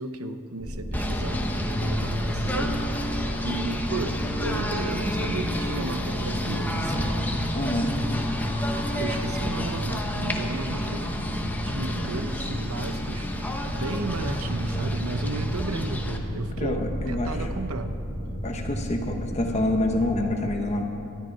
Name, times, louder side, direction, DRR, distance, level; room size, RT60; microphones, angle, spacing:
voice 1, 0.0-1.5 1.8-2.8 3.4-7.1 8.9-11.2 11.6-13.3 13.7-18.0, right 3 dB, 70° right, 9 dB, 0.9 m, -34 dB
sound 1, 0.6-20.2, equal, 35° right, 3.8 m, -32 dB
Singing / Bird, 0.9-16.2, left 1 dB, 10° left, 1.0 m, -31 dB
voice 2, 7.5-7.9 16.6-17.3 18.4-20.8, left 1 dB, 30° left, 3 dB, 0.9 m, -27 dB
20.0 x 12.5 x 4.6 m, 2.7 s
head